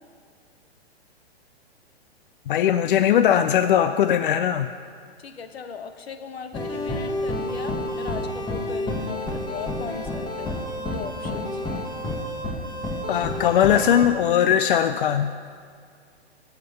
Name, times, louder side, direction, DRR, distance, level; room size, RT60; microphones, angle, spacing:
voice 1, 2.5-4.7 13.1-15.4, left 9 dB, 55° left, 10 dB, 0.4 m, -20 dB
voice 2, 5.2-10.6 10.9-11.6, left 6 dB, 70° left, 8 dB, 1.1 m, -38 dB
sound 1, 6.5-14.1, left 1 dB, 15° left, 1.2 m, -30 dB
13.5 x 5.8 x 6.8 m, 2.1 s
hypercardioid pair, 120°, 32 cm